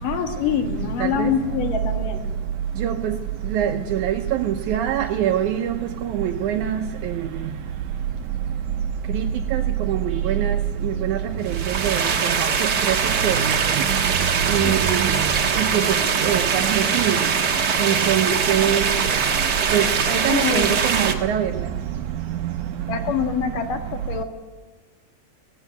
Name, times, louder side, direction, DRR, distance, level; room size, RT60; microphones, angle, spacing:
voice 1, 0.0-2.3 14.6-14.8 20.3-20.9 22.8-24.2, left 7 dB, 75° left, 5 dB, 3.4 m, -25 dB
voice 2, 1.0-1.3 2.8-3.2 3.5-7.3 9.1-10.6 10.8-11.2 11.4-13.0 13.2-13.6 14.5-15.1 15.6-17.3 17.8-18.8 19.7-21.5, right 10 dB, 75° right, 7 dB, 2.0 m, -23 dB
sound 1, 11.4-21.1, right 6 dB, 50° right, 1.3 m, -22 dB
17.5 x 17.0 x 9.5 m, 1.3 s
omnidirectional pair, 3.9 m